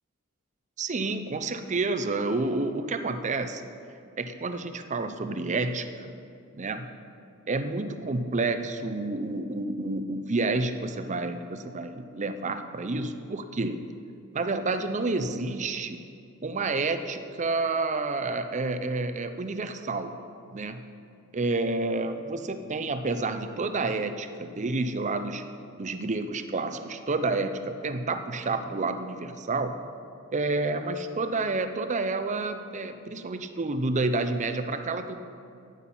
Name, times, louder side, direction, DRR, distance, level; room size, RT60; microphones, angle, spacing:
voice 1, 0.8-3.6 4.2-6.1 6.5-6.9 7.5-13.8 14.3-16.0 16.4-20.1 20.5-20.9 21.3-25.4 25.8-29.8 30.3-35.2, right 3 dB, 35° right, 9 dB, 0.6 m, -29 dB
11.0 x 9.1 x 5.5 m, 2.4 s
head